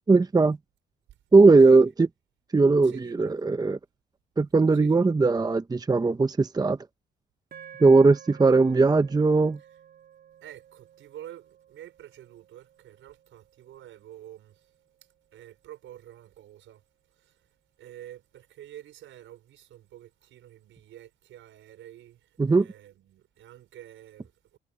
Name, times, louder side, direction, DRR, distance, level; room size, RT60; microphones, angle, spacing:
voice 1, 0.1-0.6 1.3-2.1 2.5-3.8 4.4-6.8 7.8-9.6 22.4-22.7, right 3 dB, 20° right, 0.9 m, -19 dB
voice 2, 2.8-3.3 4.7-5.0 10.4-14.7 15.3-24.6, right 12 dB, 80° right, 5.0 m, -48 dB
sound 1, 7.5-15.9, right 9 dB, 50° right, 4.8 m, -53 dB
cardioid pair, 90°, 20 cm